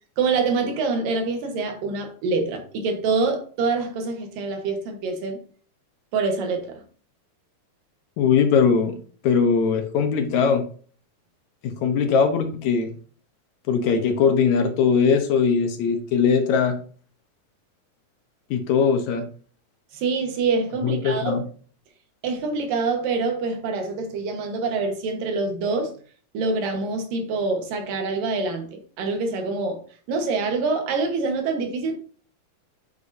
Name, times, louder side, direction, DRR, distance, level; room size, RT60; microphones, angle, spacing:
voice 1, 0.2-5.4 6.1-6.8 19.9-21.4 22.2-25.9 26.3-29.8 30.1-32.0, right 4 dB, 90° right, 3.1 m, -25 dB
voice 2, 8.2-9.0 9.2-10.6 11.6-12.9 13.7-16.8 18.5-19.2 20.8-21.4, left 6 dB, 70° left, 2.0 m, -20 dB
8.2 x 8.0 x 2.7 m
omnidirectional pair, 3.8 m